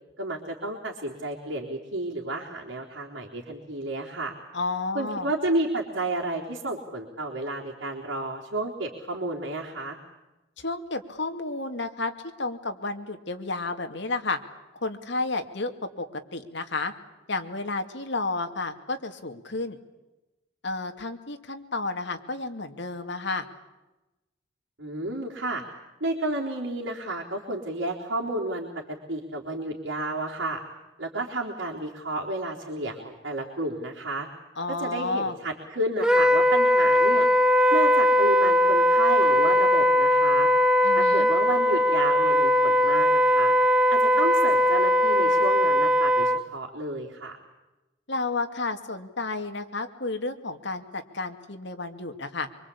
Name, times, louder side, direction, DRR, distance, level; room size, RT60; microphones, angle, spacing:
voice 1, 0.2-4.3 4.9-10.0 24.8-25.6 26.0-30.6 31.0-34.3 34.7-37.3 37.7-40.5 40.9-43.5 43.9-47.4, right 2 dB, 80° right, -3 dB, 3.9 m, -31 dB
voice 2, 4.5-5.3 10.6-12.1 12.4-14.4 14.8-15.7 16.0-16.9 17.3-19.8 20.6-23.5 34.6-35.4 40.8-41.3 48.1-52.5, left 3 dB, 65° left, 6 dB, 2.6 m, -31 dB
Wind instrument woodwind instrument, 36.0-46.4, left 1 dB, 5° right, 0.9 m, -20 dB
26.0 x 24.5 x 8.7 m, 1.0 s
head